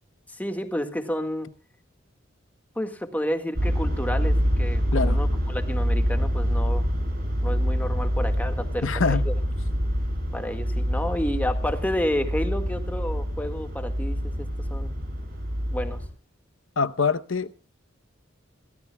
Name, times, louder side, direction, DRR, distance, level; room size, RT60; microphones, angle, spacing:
voice 1, 0.4-1.5 2.8-6.8 7.4-9.3 10.3-15.0 15.7-16.0, left 1 dB, 10° left, 1.7 m, -30 dB
sound 1, 3.6-16.1, equal, 50° right, 6.7 m, -26 dB
voice 2, 8.8-9.3 16.8-17.5, left 5 dB, 75° left, 0.8 m, -24 dB
23.0 x 16.5 x 2.2 m
head